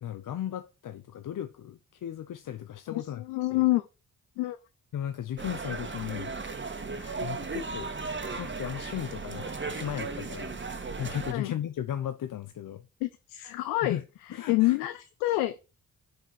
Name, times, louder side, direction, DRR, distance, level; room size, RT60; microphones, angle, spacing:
voice 1, 0.0-3.2 3.5-3.7 4.9-6.4 7.2-7.9 8.3-10.6 10.9-12.8 13.8-14.0 14.3-14.8, left 10 dB, 60° left, 0.8 m, -36 dB
voice 2, 2.9-3.9 4.4-4.6 7.0-7.3 11.3-11.5 13.0-14.0 14.5-15.6, left 18 dB, 90° left, 0.6 m, -27 dB
sound 1, 5.4-11.3, right 4 dB, 30° right, 1.8 m, -36 dB
7.7 x 4.7 x 6.0 m
hypercardioid pair, 45°, 36 cm